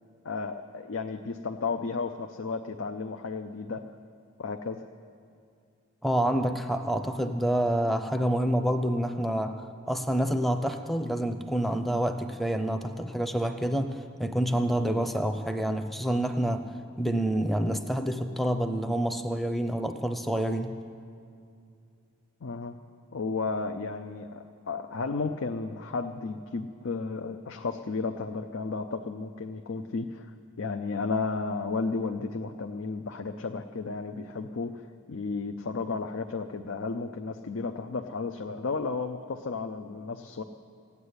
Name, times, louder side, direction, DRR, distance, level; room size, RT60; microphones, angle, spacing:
voice 1, 0.2-3.8 4.4-4.8 22.4-22.7 23.1-30.3 30.6-40.4, left 4 dB, 75° left, 5 dB, 0.5 m, -33 dB
voice 2, 6.0-16.7 17.0-20.8, right 1 dB, ahead, 7 dB, 0.6 m, -28 dB
16.0 x 8.2 x 9.6 m, 2.4 s
head